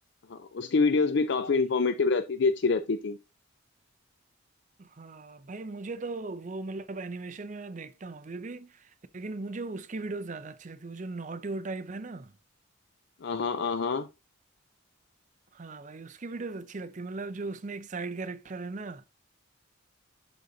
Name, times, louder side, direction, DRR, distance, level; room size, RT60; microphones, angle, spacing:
voice 1, 0.3-3.2 13.2-14.1, left 4 dB, 60° left, 0.4 m, -26 dB
voice 2, 4.8-12.4 15.5-19.1, right 3 dB, 35° right, 0.5 m, -38 dB
11.5 x 3.9 x 2.7 m
head